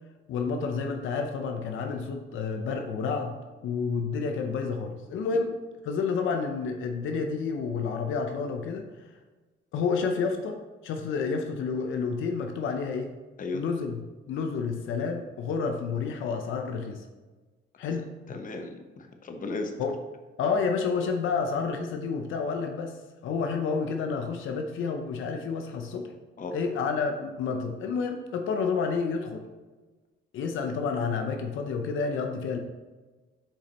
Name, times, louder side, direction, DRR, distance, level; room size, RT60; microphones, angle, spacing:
voice 1, 0.3-3.3 3.6-5.5 5.8-8.8 9.7-10.6 10.8-13.1 13.5-14.0 14.3-17.0 17.8-18.1 19.8-20.0 20.4-23.0 23.2-26.1 26.5-29.4 30.3-32.6, left 5 dB, 80° left, 4 dB, 0.7 m, -29 dB
voice 2, 18.3-19.8 26.4-26.6, left 3 dB, 40° left, 5 dB, 0.9 m, -35 dB
7.2 x 5.1 x 2.9 m, 1.2 s
cardioid pair, 90°, 20 cm